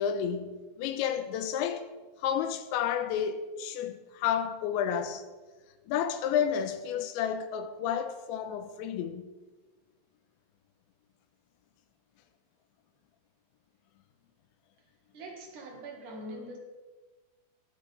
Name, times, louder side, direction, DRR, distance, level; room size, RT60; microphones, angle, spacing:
voice 1, 0.0-1.8 2.2-5.3 5.9-9.3, left 8 dB, 80° left, 2.8 m, -31 dB
voice 2, 15.1-16.6, right 1 dB, 55° right, 2.4 m, -43 dB
20.5 x 8.7 x 3.3 m
omnidirectional pair, 5.6 m